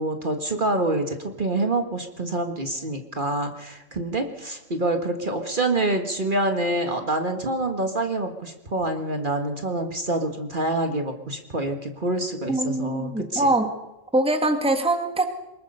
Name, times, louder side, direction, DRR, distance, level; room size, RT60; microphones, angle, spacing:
voice 1, 0.0-13.5, right 2 dB, 40° right, 5 dB, 1.7 m, -26 dB
voice 2, 12.5-13.7 14.1-15.3, right 2 dB, 5° right, 6 dB, 1.6 m, -23 dB
23.5 x 21.0 x 5.5 m, 0.96 s
omnidirectional pair, 1.3 m